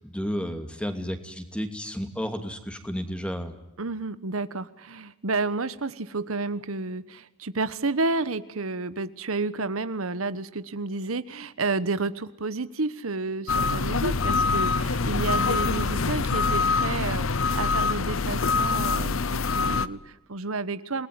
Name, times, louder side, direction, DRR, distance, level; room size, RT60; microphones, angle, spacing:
voice 1, 0.0-3.6, equal, 5° left, 7 dB, 2.6 m, -32 dB
voice 2, 3.8-21.1, right 3 dB, 85° right, 13 dB, 1.2 m, -30 dB
sound 1, 13.5-19.9, left 4 dB, 75° left, 0.9 m, -25 dB
29.0 x 20.0 x 9.6 m, 0.93 s
head